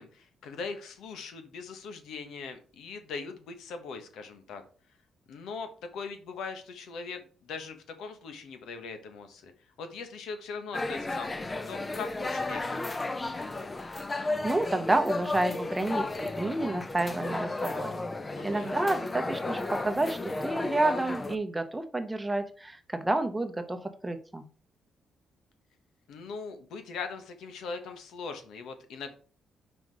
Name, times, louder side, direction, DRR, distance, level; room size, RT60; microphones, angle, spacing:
voice 1, 0.0-4.6 5.3-9.5 9.8-12.9 18.3-18.7 26.1-29.1, left 5 dB, 85° left, 7 dB, 1.3 m, -40 dB
sound 1, 10.7-21.4, left 2 dB, 20° left, 0.6 m, -33 dB
voice 2, 14.2-18.1 18.4-24.5, right 2 dB, 10° right, 8 dB, 0.8 m, -30 dB
5.8 x 5.0 x 4.8 m, 0.41 s
cardioid pair, 140°, 0 cm